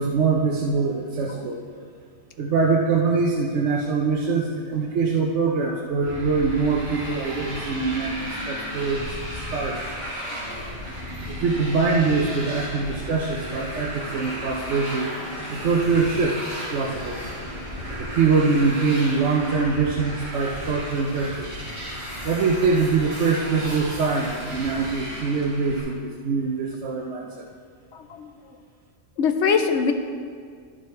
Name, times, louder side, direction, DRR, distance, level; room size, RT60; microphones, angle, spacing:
voice 1, 0.0-1.6 2.4-9.8 11.4-15.1 15.5-17.2 18.0-21.5 21.9-27.5, right 4 dB, 80° right, -1 dB, 1.1 m, -23 dB
Motorcycle, 6.0-25.8, equal, 40° right, 2.5 m, -34 dB
voice 2, 27.9-28.3 29.2-29.9, left 6 dB, 75° left, 7 dB, 1.0 m, -23 dB
11.0 x 6.6 x 4.4 m, 2.1 s
omnidirectional pair, 1.2 m